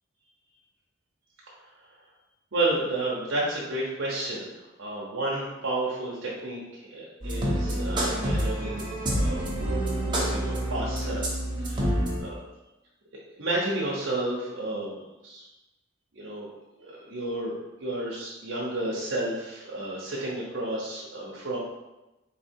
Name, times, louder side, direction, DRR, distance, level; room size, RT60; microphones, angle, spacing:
voice 1, 2.5-9.4 10.1-12.4 13.4-15.4 16.1-16.5 16.8-17.5 17.8-21.6, right 2 dB, 75° right, -5 dB, 0.8 m, -31 dB
sound 1, 7.2-12.2, right 1 dB, 25° right, 0.9 m, -27 dB
4.1 x 2.8 x 4.4 m, 1.0 s
head